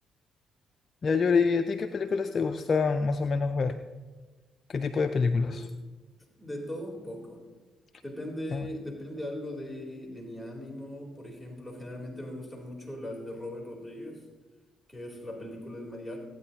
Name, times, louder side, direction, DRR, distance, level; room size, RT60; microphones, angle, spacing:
voice 1, 1.0-3.8 4.7-5.7 8.5-8.7, left 4 dB, 50° left, 7 dB, 0.5 m, -26 dB
voice 2, 6.4-7.4 8.0-14.2 14.9-16.2, left 1 dB, ahead, -3 dB, 3.7 m, -39 dB
18.5 x 9.4 x 2.9 m, 1.3 s
hypercardioid pair, 50°, 0 cm